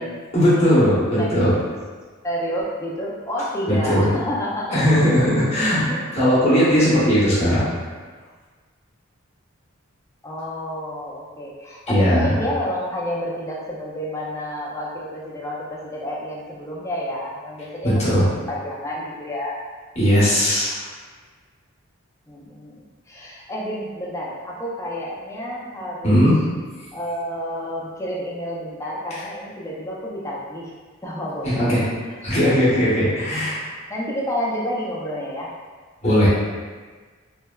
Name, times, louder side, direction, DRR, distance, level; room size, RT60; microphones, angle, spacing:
voice 1, 0.3-1.5 3.7-4.1 4.7-7.6 11.9-12.3 17.8-18.3 20.0-20.9 26.0-26.4 31.4-31.8 32.2-33.6 36.0-36.3, equal, 30° left, -11 dB, 0.9 m, -18 dB
voice 2, 2.2-4.8 10.2-19.5 22.3-26.2 26.9-30.7 31.0-31.8 32.4-32.8 33.9-35.5, equal, 15° left, -5 dB, 0.4 m, -30 dB
3.2 x 2.0 x 2.2 m, 1.4 s
head